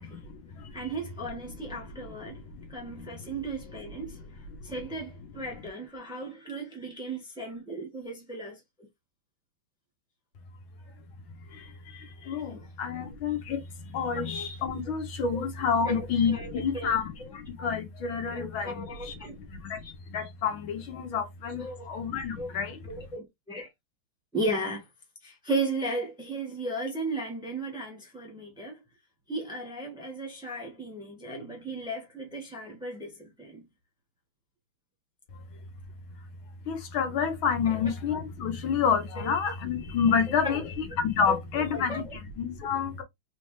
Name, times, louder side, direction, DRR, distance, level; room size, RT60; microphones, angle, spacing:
voice 1, 0.0-0.9 1.5-4.9 5.6-5.7 10.8-10.9 11.3-23.0 35.3-35.6 36.2-43.0, left 6 dB, 75° left, 1.8 m, -30 dB
voice 2, 0.7-2.4 2.7-4.2 4.6-8.6 15.3-15.4 15.8-16.0 16.3-16.9 18.3-19.4 21.6-21.9 22.4-22.5 22.9-23.7 24.3-24.8 25.2-28.8 29.3-33.6 39.2-39.3 40.4-40.6 41.3-41.4 41.7-42.0, right 2 dB, 5° right, 1.2 m, -35 dB
3.7 x 3.3 x 3.2 m
omnidirectional pair, 2.3 m